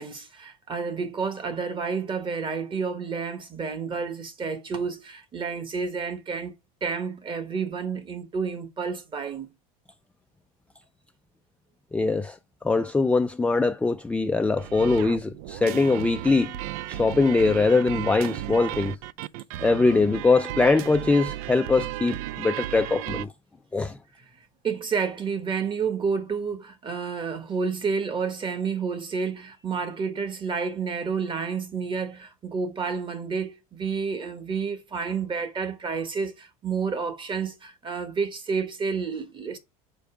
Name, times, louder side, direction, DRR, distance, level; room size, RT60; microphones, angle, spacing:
voice 1, 0.0-6.5 6.8-9.5 24.6-39.6, right 5 dB, 25° right, 1.2 m, -30 dB
voice 2, 11.9-12.4 12.6-16.6 16.9-19.0 19.6-23.3 23.7-24.0, left 3 dB, 5° left, 0.4 m, -22 dB
sound 1, 14.6-23.3, right 14 dB, 75° right, 0.4 m, -34 dB
5.2 x 4.6 x 4.9 m
supercardioid pair, 120°, 19 cm